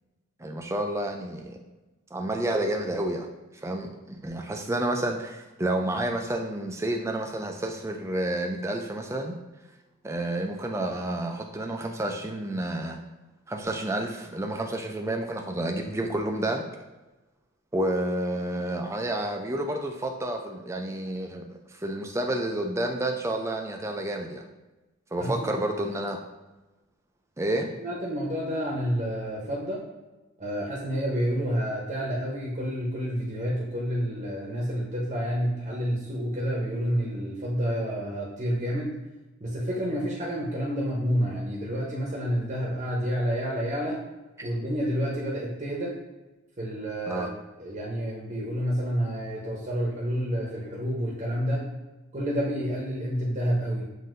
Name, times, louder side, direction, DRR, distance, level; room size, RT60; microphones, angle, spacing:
voice 1, 0.4-1.6 2.1-3.3 3.6-9.4 10.0-13.0 13.5-16.6 17.7-24.4 25.1-26.2 27.4-27.7 44.4-44.5 47.1-47.3, right 1 dB, 15° right, 3 dB, 0.3 m, -30 dB
voice 2, 25.2-25.5 27.8-29.8 30.4-38.9 39.4-44.0 44.4-46.0 46.6-47.3 47.6-51.7 52.1-53.9, equal, 30° right, -4 dB, 0.8 m, -29 dB
7.4 x 2.7 x 2.6 m, 1.1 s
head